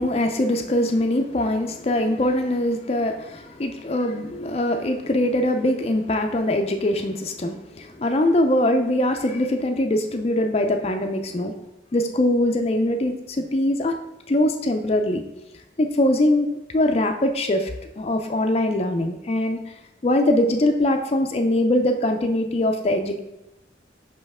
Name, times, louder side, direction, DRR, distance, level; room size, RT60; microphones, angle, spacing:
voice 1, 0.0-11.5 11.9-14.0 14.3-15.2 15.8-16.5 16.7-17.7 18.0-19.6 20.0-23.2, left 1 dB, 35° left, 5 dB, 0.4 m, -22 dB
5.6 x 5.3 x 3.5 m, 0.92 s
head